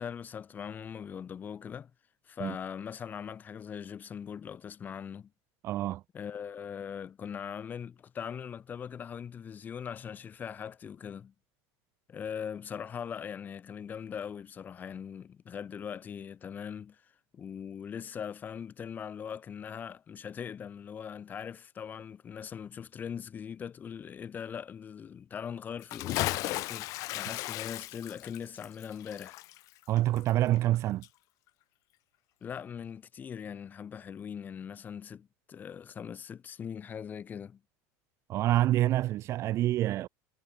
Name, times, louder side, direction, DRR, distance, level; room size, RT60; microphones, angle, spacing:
voice 1, 0.0-1.9 2.3-5.3 6.1-11.3 12.1-26.9 27.1-29.4 32.4-37.6, left 7 dB, 20° left, 0.8 m, -41 dB
voice 2, 5.6-6.0 29.9-31.1 38.3-40.1, right 14 dB, 35° right, 0.5 m, -27 dB
Bathtub (filling or washing) / Splash splatter, 25.8-30.8 31.0-31.1, left 19 dB, 45° left, 0.4 m, -36 dB
cardioid pair, 160°, 8 cm